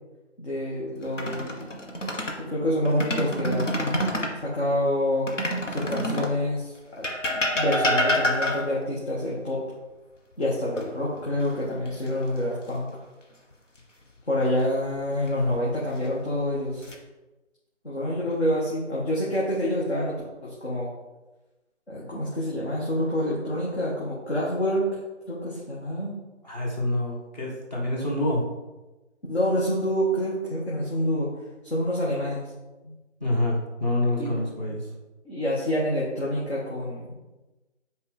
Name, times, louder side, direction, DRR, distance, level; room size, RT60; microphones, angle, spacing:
voice 1, 0.4-1.7 2.4-4.0 4.4-5.3 5.7-9.6 10.4-12.9 14.3-16.8 17.8-20.2 20.4-20.9 21.9-25.0 25.3-26.1 29.3-31.3 31.6-32.5 34.2-34.3 35.3-37.2, left 1 dB, 60° left, -6 dB, 1.9 m, -27 dB
sound 1, 1.0-2.4 2.9-4.4 5.3-6.4 7.0-8.9 10.8-11.5 11.9-12.1 15.0-15.6 16.3-17.0, equal, 80° left, 1.4 m, -27 dB
voice 2, 26.4-28.4 32.8-32.9 33.2-34.9, left 1 dB, 35° left, -3 dB, 1.8 m, -27 dB
7.9 x 4.4 x 3.5 m, 1.1 s
figure-of-eight pair, 170°, 37 cm